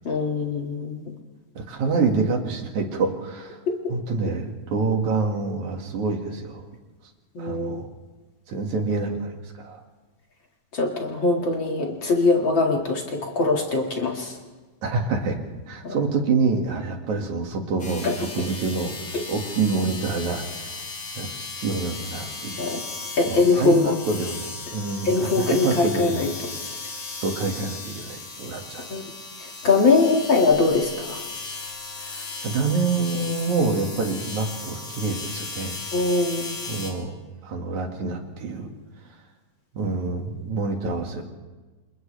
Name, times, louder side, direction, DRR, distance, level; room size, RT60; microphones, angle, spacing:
voice 1, 0.0-1.1 3.7-3.9 7.3-7.8 10.7-14.3 15.8-16.0 18.0-18.5 19.1-19.2 22.6-22.8 23.2-24.0 25.0-26.3 28.9-29.0 29.4-31.2 35.9-36.6, left 3 dB, 45° left, 1 dB, 2.6 m, -22 dB
voice 2, 1.6-3.6 3.9-6.7 7.4-7.9 8.5-9.8 14.8-15.4 15.7-18.9 19.3-20.8 21.2-22.8 23.2-26.3 27.2-29.0 32.0-35.8 36.7-37.2 37.4-38.7 39.7-41.3, right 4 dB, 75° right, 2 dB, 3.5 m, -27 dB
sound 1, 17.8-36.9, left 3 dB, 90° left, 5.2 m, -36 dB
28.0 x 28.0 x 3.4 m, 1.3 s
omnidirectional pair, 3.3 m